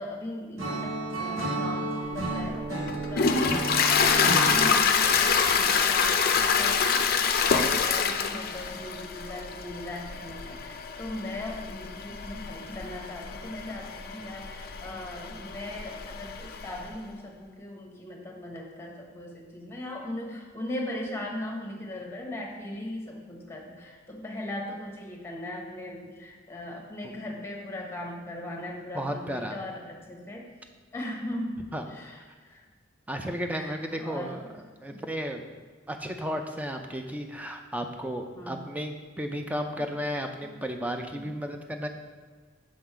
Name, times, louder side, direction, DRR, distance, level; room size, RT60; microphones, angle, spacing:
voice 1, 0.0-30.5 30.9-31.6 31.9-32.6 33.4-34.5 34.9-35.0 38.3-38.7 39.8-39.9 40.4-40.5 41.2-41.3, left 1 dB, 15° left, -1 dB, 1.0 m, -39 dB
Acoustic guitar / Strum, 0.6-4.7, right 2 dB, 85° right, 1.6 m, -32 dB
Toilet flush, 2.1-16.9, left 6 dB, 50° left, 0.4 m, -26 dB
voice 2, 28.9-29.6 31.7-31.8 33.1-34.4 34.8-35.4 35.9-41.9, equal, 10° right, 4 dB, 0.4 m, -33 dB
6.3 x 3.9 x 4.5 m, 1.5 s
head